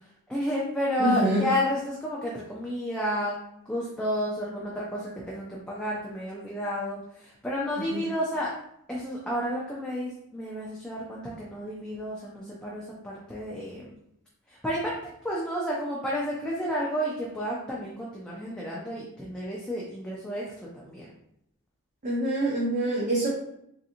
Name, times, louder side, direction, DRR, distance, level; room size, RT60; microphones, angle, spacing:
voice 1, 0.3-3.4 3.7-8.5 8.9-13.9 14.5-21.1, equal, 5° left, -6 dB, 0.4 m, -31 dB
voice 2, 1.0-1.5 7.8-8.0 22.0-23.3, right 1 dB, 35° right, -5 dB, 0.6 m, -26 dB
3.7 x 2.8 x 2.5 m, 0.76 s
head